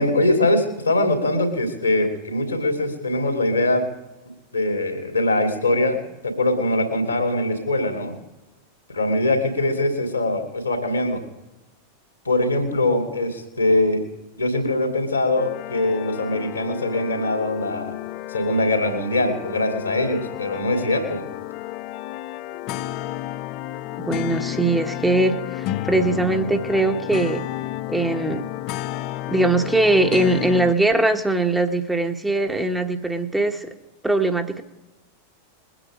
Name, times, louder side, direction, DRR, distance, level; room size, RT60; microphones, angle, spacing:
voice 1, 0.0-3.8 4.5-8.1 8.9-11.2 12.2-14.0 14.3-17.9 18.3-21.2, left 2 dB, 80° left, 4 dB, 2.8 m, -22 dB
sound 1, 15.4-30.7, left 15 dB, 40° left, 0.5 m, -32 dB
voice 2, 24.1-27.4 27.9-28.5 29.3-33.7 34.0-34.6, right 2 dB, 5° right, 5 dB, 1.1 m, -21 dB
21.5 x 9.0 x 5.0 m, 1.0 s
figure-of-eight pair, 90°, 0 cm